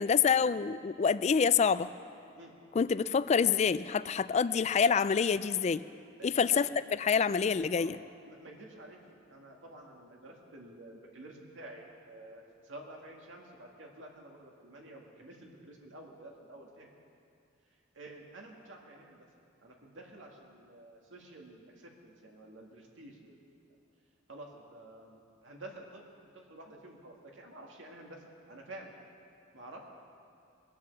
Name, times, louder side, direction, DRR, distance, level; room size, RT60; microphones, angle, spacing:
voice 1, 0.0-1.9 2.8-5.8 6.2-6.7 7.0-8.0, left 6 dB, 35° left, 15 dB, 0.3 m, -27 dB
voice 2, 6.2-6.7 7.8-7.9 8.3-16.9 17.7-19.3 19.6-23.5 24.3-26.1 26.5-29.0 29.5-29.8, right 1 dB, 80° right, 0 dB, 2.1 m, -50 dB
21.5 x 7.6 x 7.1 m, 2.5 s
head